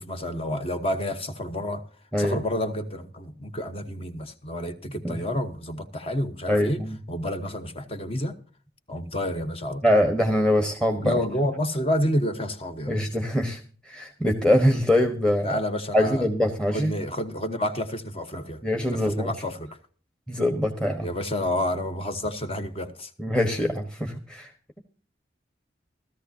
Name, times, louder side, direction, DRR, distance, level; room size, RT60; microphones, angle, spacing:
voice 1, 0.0-1.8 2.2-8.4 8.9-9.8 11.0-13.0 15.4-16.3 16.7-18.6 18.9-19.7 21.0-23.1, left 1 dB, 35° left, 1.2 m, -29 dB
voice 2, 6.5-7.0 9.8-11.1 12.9-13.6 13.9-15.5 15.9-16.9 18.6-19.3 20.3-21.1 23.2-24.5, left 1 dB, 5° left, 1.2 m, -23 dB
16.5 x 14.0 x 2.8 m
head